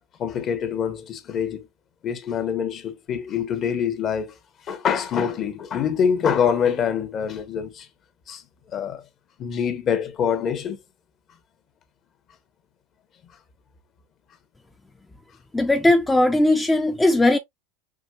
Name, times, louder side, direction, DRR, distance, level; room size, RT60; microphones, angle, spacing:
voice 1, 0.2-1.7 2.0-4.4 4.7-7.9 8.3-8.4 8.7-9.0 9.4-10.8, left 7 dB, 40° left, 1.1 m, -25 dB
voice 2, 15.5-17.4, left 1 dB, 10° left, 0.6 m, -18 dB
6.1 x 3.0 x 2.3 m
hypercardioid pair, 90°, 0 cm